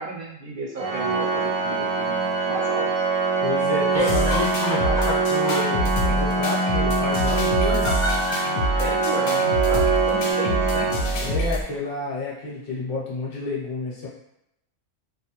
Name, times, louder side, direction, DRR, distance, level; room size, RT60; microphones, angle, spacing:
voice 1, 0.0-2.9 8.8-10.9, right 2 dB, 60° right, -3 dB, 0.6 m, -33 dB
Organ, 0.8-11.7, right 4 dB, 80° right, 1.0 m, -24 dB
voice 2, 3.4-7.9 11.2-14.1, left 3 dB, 50° left, -5 dB, 0.9 m, -30 dB
sound 1, 3.9-5.6 7.6-8.5 9.6-9.8 10.2-10.3, left 1 dB, 20° left, 0.4 m, -29 dB
sound 2, 4.1-11.6, equal, 75° left, 0.9 m, -26 dB
2.4 x 2.2 x 2.9 m, 0.79 s
omnidirectional pair, 1.4 m